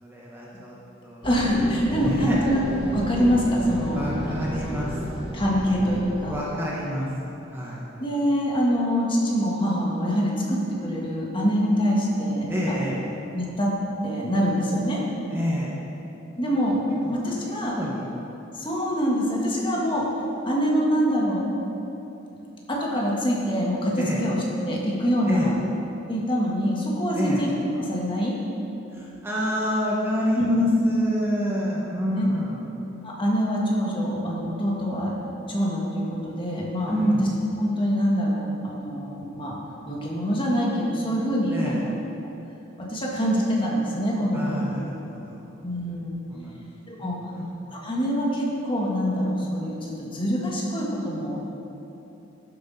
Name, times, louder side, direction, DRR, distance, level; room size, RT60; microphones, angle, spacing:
voice 1, 0.0-0.7 1.0-1.3 1.8-2.4 3.9-5.2 5.6-5.7 6.3-7.1 7.5-7.8 12.5-13.0 15.3-15.7 17.0-18.0 24.0-24.2 25.3-25.5 27.1-27.4 28.9-32.6 36.9-37.2 41.5-41.8 44.3-45.4 46.3-47.0 47.3-47.4, equal, 10° right, -5 dB, 1.2 m, -28 dB
voice 2, 1.2-2.6 2.9-4.4 4.6-4.7 5.3-6.4 8.0-13.0 13.3-13.7 14.0-15.0 16.4-16.8 17.1-17.7 18.5-20.0 20.5-21.4 22.7-25.5 26.1-27.5 27.8-28.4 30.3-30.6 32.2-32.3 33.0-35.1 35.5-37.1 37.6-39.5 39.9-41.9 42.8-44.6 45.6-46.2 46.9-47.2 47.7-51.4, equal, 25° left, -4 dB, 1.8 m, -25 dB
sound 1, 1.2-6.4, right 1 dB, 30° right, 1.6 m, -32 dB
12.5 x 8.0 x 4.2 m, 2.9 s
head